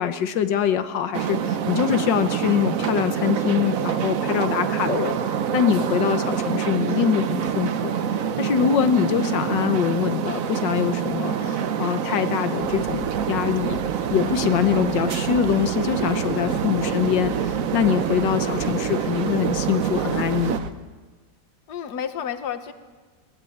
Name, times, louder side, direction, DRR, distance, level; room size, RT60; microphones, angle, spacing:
voice 1, 0.0-5.2 5.5-7.9 8.4-13.8 14.1-20.6, left 9 dB, 90° left, 9 dB, 1.6 m, -24 dB
sound 1, 1.1-20.6, right 8 dB, 55° right, 1.2 m, -26 dB
sound 2, 3.2-9.1 9.5-9.7 10.2-10.3, right 3 dB, 35° right, 2.3 m, -47 dB
sound 3, 12.6-20.7, right 6 dB, 80° right, 1.7 m, -36 dB
voice 2, 16.4-17.0 21.7-22.7, left 8 dB, 65° left, 9 dB, 1.7 m, -32 dB
21.0 x 18.5 x 8.7 m, 1.4 s
omnidirectional pair, 1.9 m